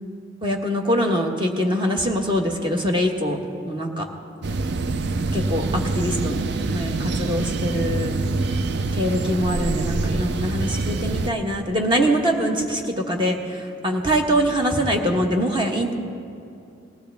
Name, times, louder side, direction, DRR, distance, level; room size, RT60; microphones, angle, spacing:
voice 1, 0.4-3.4 3.6-4.1 5.3-6.4 6.7-8.1 8.9-15.9, equal, 25° right, 2 dB, 1.2 m, -23 dB
sound 1, 4.4-11.3, right 3 dB, 60° right, 0.5 m, -25 dB
19.5 x 16.0 x 3.4 m, 2.6 s
head